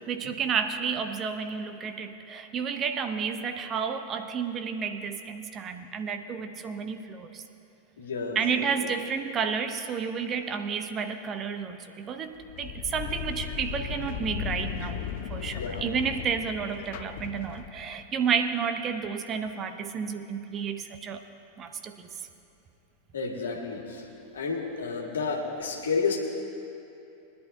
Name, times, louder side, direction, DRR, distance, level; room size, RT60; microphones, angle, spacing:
voice 1, 0.1-7.4 8.4-15.0 15.3-21.2 21.6-22.1, right 6 dB, 30° right, 8 dB, 0.7 m, -31 dB
voice 2, 8.0-8.9 15.6-15.9 23.1-24.1 24.3-26.2, left 4 dB, 65° left, 0 dB, 1.8 m, -31 dB
sound 1, 12.4-18.0, left 9 dB, 50° left, 0.5 m, -36 dB
22.5 x 11.0 x 2.7 m, 2.8 s
figure-of-eight pair, 90°, 0 cm